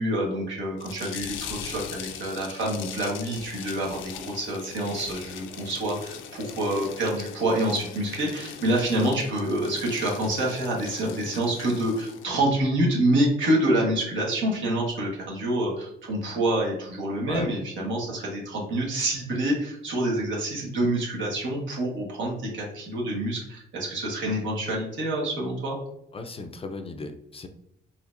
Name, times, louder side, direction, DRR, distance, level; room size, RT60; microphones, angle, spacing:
voice 1, 0.0-25.8, right 1 dB, 70° right, -2 dB, 1.4 m, -27 dB
sound 1, 0.8-12.3, left 8 dB, 80° left, 0.5 m, -40 dB
voice 2, 26.1-27.5, left 3 dB, 30° left, 6 dB, 0.4 m, -36 dB
4.2 x 2.8 x 2.5 m, 0.78 s
cardioid pair, 90°, 20 cm